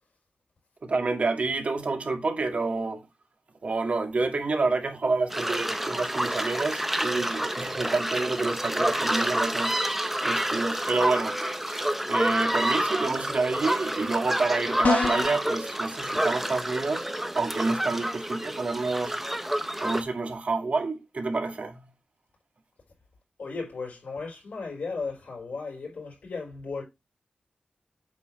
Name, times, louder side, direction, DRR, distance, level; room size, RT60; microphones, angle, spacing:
voice 1, 0.8-3.0 3.6-9.7 10.2-11.4 11.7-11.8 12.1-17.0 17.3-19.2 19.8-21.9, right 3 dB, 55° right, 1.8 m, -28 dB
sound 1, 5.3-20.0, right 1 dB, 5° right, 0.8 m, -28 dB
sound 2, 14.8-15.4, left 5 dB, 70° left, 0.5 m, -25 dB
voice 2, 23.4-26.8, left 4 dB, 90° left, 4.3 m, -35 dB
8.3 x 3.3 x 6.2 m
wide cardioid pair, 120°, 3 cm